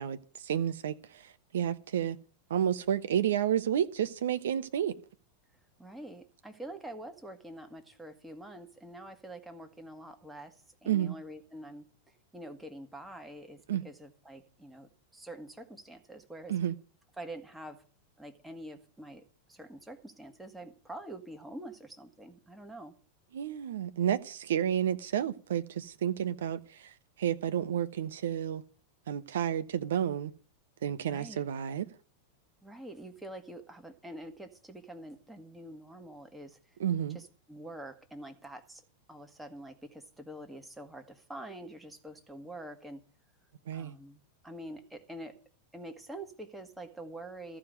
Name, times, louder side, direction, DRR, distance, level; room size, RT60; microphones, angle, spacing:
voice 1, 0.0-2.2 2.5-5.0 10.9-11.1 13.7-13.8 16.5-16.8 23.3-28.6 29.1-30.3 30.8-31.9 36.8-37.2 43.7-44.0, right 9 dB, 60° right, 0.8 m, -31 dB
voice 2, 5.8-16.5 17.2-17.8 18.2-19.2 19.5-22.9 31.1-31.4 32.6-36.6 37.1-38.8 39.1-43.0 43.7-45.4 45.7-47.6, right 1 dB, 5° right, 1.7 m, -46 dB
14.5 x 5.0 x 9.1 m
figure-of-eight pair, 90°, 0 cm